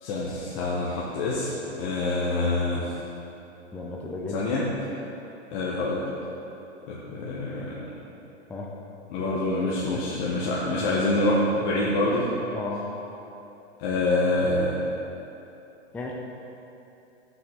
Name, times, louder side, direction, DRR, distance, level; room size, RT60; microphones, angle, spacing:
voice 1, 0.0-2.8 4.3-4.6 5.5-6.1 6.9-7.9 9.1-12.3 13.8-14.7, left 2 dB, 40° left, -6 dB, 1.4 m, -26 dB
voice 2, 3.7-4.5 8.5-8.7 9.2-10.1 12.5-12.9 15.9-16.1, left 2 dB, 5° left, -1 dB, 0.5 m, -35 dB
14.5 x 6.0 x 3.7 m, 2.9 s
hypercardioid pair, 120°, 35 cm